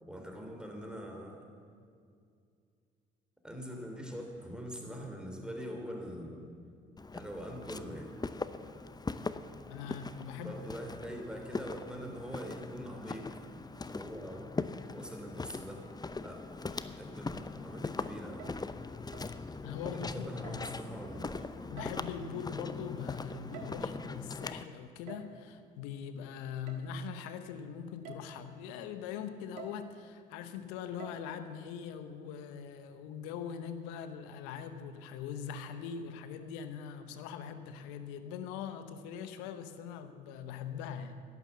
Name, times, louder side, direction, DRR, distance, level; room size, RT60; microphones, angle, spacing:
voice 1, 0.1-1.5 3.4-6.5 7.1-8.1 10.4-14.5 14.9-15.9 16.2-18.5 19.9-21.5, equal, 5° right, 1 dB, 3.3 m, -43 dB
Walk footsteps, 7.0-24.7, left 3 dB, 20° left, 0.7 m, -41 dB
voice 2, 9.7-10.5 19.6-20.8 21.7-41.1, left 7 dB, 85° left, 10 dB, 0.9 m, -42 dB
sound 1, 18.4-18.7 19.1-19.4 20.4-20.8 21.8-22.3 23.3-24.0 25.1-25.4 26.7-26.8 27.4-27.5 28.0-28.4 29.6-29.9 31.0-31.2, right 5 dB, 85° right, 1.4 m, -49 dB
11.5 x 11.0 x 7.3 m, 2.3 s
hypercardioid pair, 55°, 21 cm